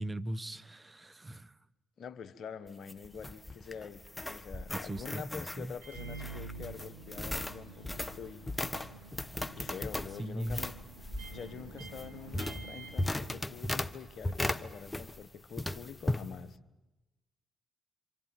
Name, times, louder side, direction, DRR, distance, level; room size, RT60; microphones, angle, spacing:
voice 1, 0.0-1.6 4.7-5.3 5.6-5.7 10.2-10.6, right 1 dB, 25° right, 1.1 m, -39 dB
voice 2, 2.0-8.5 9.5-10.8 11.3-16.6, left 6 dB, 65° left, 1.2 m, -46 dB
sound 1, 2.7-15.3 15.6-16.3, left 1 dB, 15° left, 1.4 m, -37 dB
Microwave oven, 5.8-13.9, right 4 dB, 85° right, 7.4 m, -49 dB
27.5 x 27.0 x 7.6 m
hypercardioid pair, 50°, 0 cm